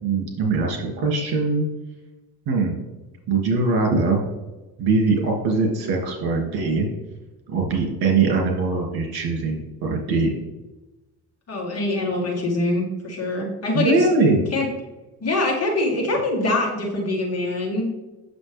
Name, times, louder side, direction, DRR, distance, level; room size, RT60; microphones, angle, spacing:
voice 1, 0.0-1.7 2.5-2.8 3.3-4.2 4.8-6.9 7.5-10.3 13.7-14.4, right 3 dB, 75° right, 1 dB, 2.5 m, -21 dB
voice 2, 11.5-14.1 14.5-14.7 15.2-17.9, left 2 dB, 40° left, 0 dB, 1.8 m, -24 dB
8.1 x 6.7 x 3.5 m, 1.1 s
cardioid pair, 165°, 38 cm